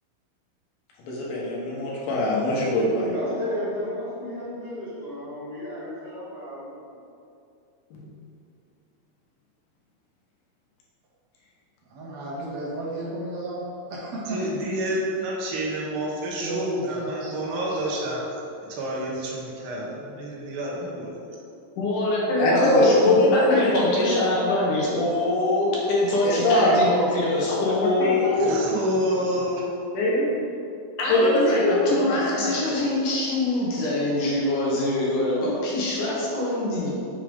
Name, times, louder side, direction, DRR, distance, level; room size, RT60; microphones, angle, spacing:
voice 1, 1.1-3.1 8.0-8.1 22.4-24.3 26.2-26.8 27.7-28.2 29.9-30.3 31.1-32.5, left 1 dB, 85° left, -5 dB, 3.0 m, -22 dB
voice 2, 3.1-7.0 27.6-28.0, equal, 45° left, -13 dB, 1.7 m, -33 dB
voice 3, 11.9-15.1 16.4-17.4 28.7-28.8, right 1 dB, 70° right, -5 dB, 1.6 m, -34 dB
voice 4, 14.3-18.3 18.6-21.3 28.4-29.7, right 1 dB, 90° right, -4 dB, 1.1 m, -29 dB
voice 5, 21.8-28.6 31.0-36.9, left 2 dB, 70° left, -5 dB, 2.6 m, -24 dB
6.5 x 3.4 x 5.2 m, 2.6 s
omnidirectional pair, 4.1 m